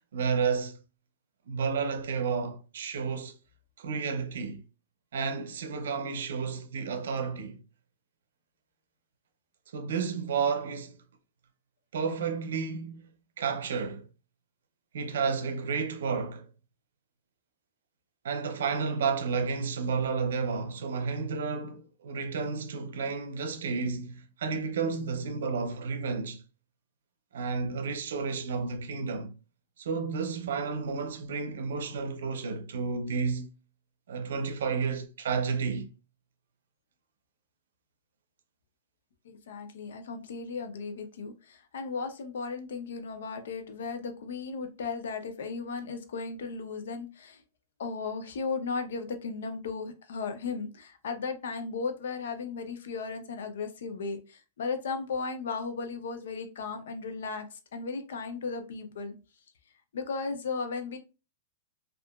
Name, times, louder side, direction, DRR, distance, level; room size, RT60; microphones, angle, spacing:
voice 1, 0.1-0.8 1.5-3.4 3.8-4.6 5.1-7.6 9.7-11.0 11.9-13.0 13.4-14.1 14.9-16.5 18.2-26.4 27.3-29.3 29.8-33.5 34.1-35.9, right 5 dB, 85° right, 0.5 m, -31 dB
voice 2, 39.2-47.4 47.8-57.4 57.7-59.1 59.9-61.0, left 4 dB, 85° left, 0.5 m, -35 dB
2.7 x 2.4 x 2.3 m
supercardioid pair, 160°, 0 cm